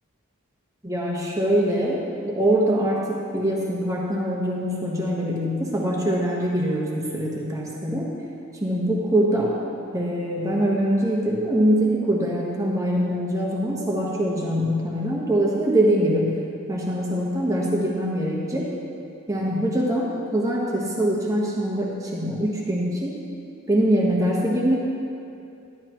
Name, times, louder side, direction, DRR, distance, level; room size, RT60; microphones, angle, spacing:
voice 1, 0.8-8.1 8.6-9.5 9.9-16.4 16.7-18.7 19.3-23.2 23.7-24.8, right 1 dB, 15° right, -3 dB, 1.2 m, -23 dB
11.5 x 11.5 x 3.0 m, 2.6 s
head